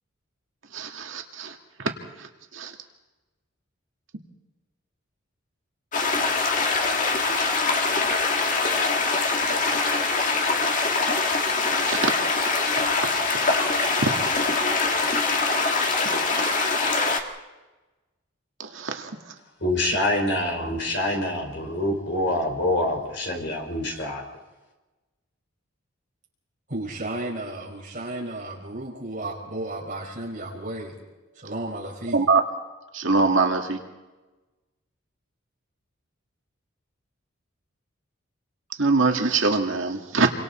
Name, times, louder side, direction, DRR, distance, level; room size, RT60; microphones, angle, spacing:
voice 1, 0.7-1.9 2.2-2.8 11.6-12.5 13.6-14.6 16.0-16.1 18.6-19.3 32.1-32.4 32.9-33.8 38.7-40.3, right 3 dB, 70° right, 3 dB, 1.9 m, -25 dB
sound 1, 5.9-17.2, left 3 dB, 40° left, 2.0 m, -23 dB
voice 2, 19.6-24.2, left 1 dB, 55° left, 1 dB, 5.1 m, -26 dB
voice 3, 26.7-31.0 31.3-32.2, right 1 dB, 40° right, -2 dB, 5.6 m, -33 dB
28.5 x 24.5 x 4.4 m, 1.1 s
head